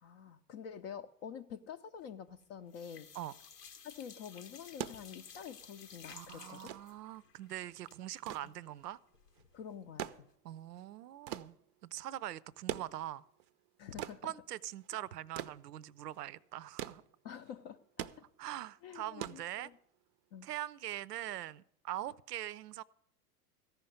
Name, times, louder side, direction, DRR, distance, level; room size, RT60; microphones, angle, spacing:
voice 1, 0.0-3.1 3.8-6.7 9.5-10.3 13.8-14.2 17.2-17.8 18.8-19.7 20.3-20.5, left 8 dB, 40° left, 0.5 m, -47 dB
sound 1, 2.0-2.4 2.7-9.6 9.9-10.0 10.3-10.4, left 6 dB, 85° left, 0.9 m, -55 dB
sound 2, 4.6-20.1 21.3-21.4, right 12 dB, 35° right, 0.5 m, -46 dB
voice 2, 6.1-9.0 10.4-11.6 11.8-13.2 14.2-17.0 18.4-19.7 20.4-22.8, right 13 dB, 80° right, 0.5 m, -43 dB
14.0 x 5.7 x 7.9 m
hypercardioid pair, 95°, 47 cm